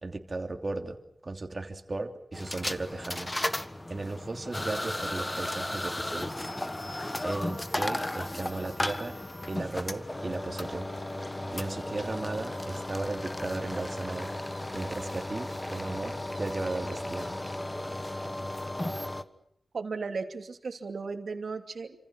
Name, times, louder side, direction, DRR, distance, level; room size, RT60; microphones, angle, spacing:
voice 1, 0.0-1.0 1.2-6.4 7.2-9.2 9.5-10.9 11.5-14.3 14.7-17.4, right 2 dB, 35° right, 5 dB, 3.0 m, -36 dB
sound 1, 2.3-19.2, left 1 dB, 20° left, 1.4 m, -35 dB
voice 2, 19.7-22.0, right 4 dB, 75° right, 6 dB, 2.8 m, -36 dB
29.5 x 26.5 x 6.1 m, 0.74 s
wide cardioid pair, 110°, 0 cm